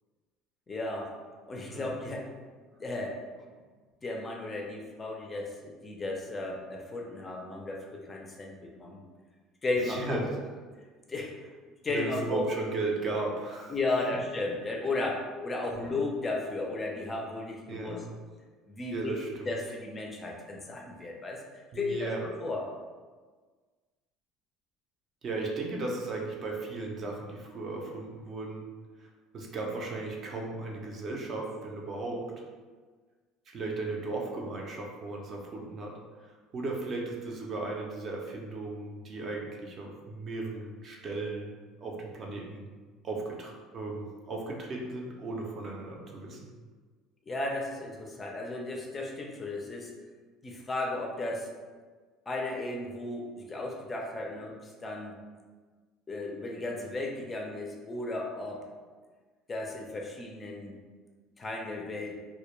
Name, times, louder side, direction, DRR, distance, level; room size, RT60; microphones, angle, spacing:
voice 1, 0.7-1.1 1.5-2.3 2.8-3.1 4.0-9.0 9.6-10.2 11.1-11.3 11.8-12.4 13.7-18.0 18.7-19.1 19.5-21.4 21.7-22.7 47.3-49.9 50.4-51.5 52.3-55.2 56.1-58.6 59.5-60.8 61.4-62.1, left 2 dB, 25° left, 0 dB, 0.4 m, -34 dB
voice 2, 9.8-10.3 11.9-13.7 15.7-16.0 17.7-18.1 18.9-19.5 21.7-22.3 25.2-28.7 29.0-32.3 33.5-41.5 41.8-42.7 43.0-46.4, right 3 dB, 40° right, -1 dB, 0.5 m, -36 dB
2.1 x 2.1 x 3.0 m, 1.4 s
supercardioid pair, 110°, 0 cm